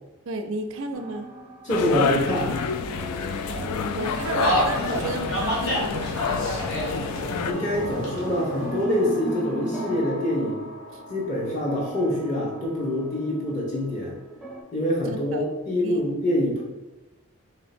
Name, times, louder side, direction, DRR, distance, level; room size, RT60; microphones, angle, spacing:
voice 1, 0.3-1.3 3.5-6.6 10.9-11.0 15.1-15.4 15.8-16.0, right 2 dB, 60° right, 7 dB, 0.4 m, -33 dB
sound 1, 0.9-14.6, right 1 dB, ahead, 0.5 m, -38 dB
voice 2, 1.6-2.6 4.9-5.1 7.4-10.7 11.1-14.2 14.7-16.6, left 1 dB, 35° left, -4 dB, 1.0 m, -25 dB
sound 2, 1.7-7.5, left 5 dB, 85° left, 0.3 m, -28 dB
sound 3, 4.2-9.3, equal, 65° left, 1.2 m, -29 dB
3.2 x 2.8 x 4.2 m, 1.0 s
head